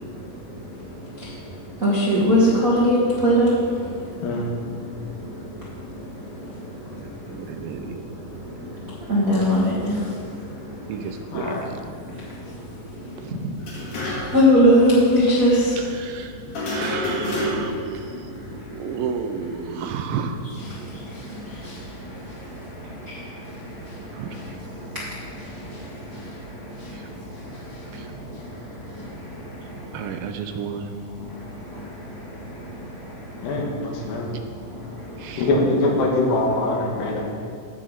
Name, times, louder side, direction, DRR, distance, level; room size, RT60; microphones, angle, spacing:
voice 1, 1.8-3.5 9.1-10.0 14.3-15.7 21.6-21.7, equal, 55° right, -8 dB, 0.9 m, -17 dB
voice 2, 4.2-4.5 11.3-11.6 33.4-34.3 35.4-37.2, left 2 dB, 85° left, -1 dB, 3.1 m, -23 dB
voice 3, 6.9-8.0 10.9-11.5 13.2-13.3 15.8-16.4 16.7-20.4 24.1-24.4 26.9-27.0 27.9-28.1 29.9-30.9 35.2-35.5, right 7 dB, 80° right, 6 dB, 2.2 m, -32 dB
sound 1, 13.6-14.5 14.8-14.9 16.5-17.9, left 1 dB, 65° left, 3.5 m, -28 dB
15.0 x 6.2 x 4.0 m, 2.3 s
omnidirectional pair, 4.1 m